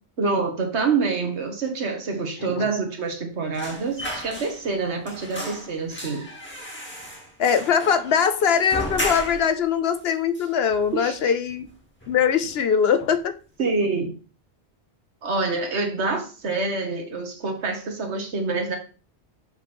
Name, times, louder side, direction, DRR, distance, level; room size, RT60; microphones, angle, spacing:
voice 1, 0.2-6.3 10.9-11.3 13.6-14.1 15.2-18.8, right 4 dB, 70° right, 1.5 m, -26 dB
sound 1, 3.5-4.8 5.1-9.6 9.9-10.0 10.3-11.2 11.5-11.7 12.0-12.7 13.0-13.2, equal, 10° left, 1.4 m, -35 dB
voice 2, 7.4-11.7 12.1-13.3, left 7 dB, 65° left, 0.8 m, -22 dB
7.4 x 3.1 x 4.3 m
omnidirectional pair, 1.2 m